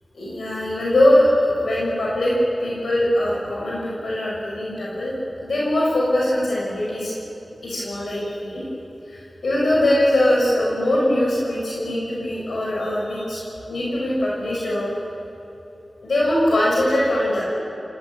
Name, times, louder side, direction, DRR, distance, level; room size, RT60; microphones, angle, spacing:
voice 1, 0.1-2.3 2.6-7.1 7.6-8.6 9.1-13.4 13.7-14.9 16.0-17.4, left 1 dB, 85° left, -5 dB, 6.2 m, -21 dB
27.5 x 17.5 x 9.0 m, 3.0 s
wide cardioid pair, 80°, 0 cm